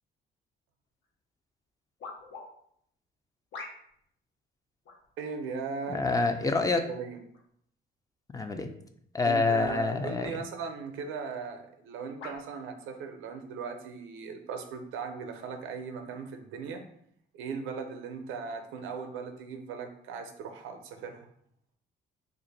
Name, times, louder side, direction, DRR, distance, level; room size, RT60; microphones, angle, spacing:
sound 1, 1.0-1.1 2.0-2.5 3.5-4.0 4.8-5.1 6.1-6.5 7.3-7.4 9.4-9.6 10.2-10.3 11.2-11.3 12.2-12.5 13.3-13.4, left 3 dB, 75° left, 0.7 m, -45 dB
voice 1, 5.2-6.1 6.9-7.2 9.2-16.9 17.3-21.3, right 5 dB, 90° right, 6 dB, 0.5 m, -38 dB
voice 2, 5.9-6.8 8.3-8.7 9.1-10.4, left 3 dB, 20° left, 7 dB, 0.3 m, -27 dB
2.5 x 2.4 x 3.9 m, 0.69 s
cardioid pair, 90°, 20 cm